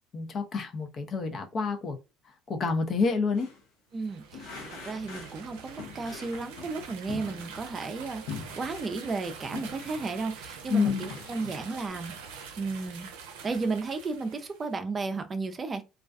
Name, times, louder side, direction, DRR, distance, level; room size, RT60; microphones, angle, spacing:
voice 1, 0.1-2.0 2.5-3.5 10.7-11.1, left 4 dB, 50° left, 0.5 m, -28 dB
sound 1, 3.3-3.6 4.3-5.4 5.8-7.8 8.3-10.2 10.6-11.9, left 5 dB, 85° left, 0.7 m, -42 dB
voice 2, 3.9-12.1 12.6-13.1 13.4-15.8, right 3 dB, 35° right, 0.4 m, -34 dB
sound 2, 3.9-14.7, right 6 dB, 85° right, 0.5 m, -45 dB
2.3 x 2.2 x 2.4 m
hypercardioid pair, 70°, 0 cm